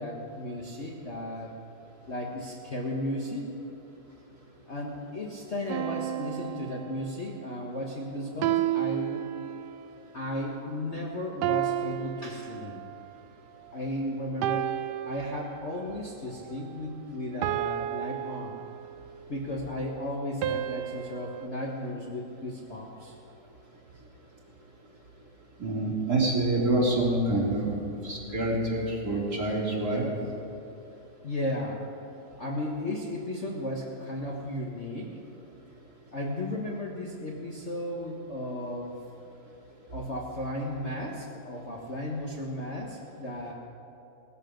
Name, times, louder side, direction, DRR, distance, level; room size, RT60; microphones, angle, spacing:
voice 1, 0.0-1.5 2.1-3.5 4.7-9.2 10.1-12.8 13.7-14.7 15.1-18.6 19.3-23.1 31.2-31.8 32.4-35.2 36.1-39.0 39.9-43.5, left 1 dB, 40° left, -2 dB, 1.5 m, -35 dB
sound 1, 5.7-7.3 8.4-9.9 11.4-13.1 14.4-15.9 17.4-19.2 20.4-21.5, right 13 dB, 75° right, 1.0 m, -32 dB
voice 2, 25.6-27.7 28.0-30.1, right 2 dB, 50° right, -5 dB, 3.8 m, -26 dB
18.5 x 13.5 x 5.2 m, 2.8 s
omnidirectional pair, 2.2 m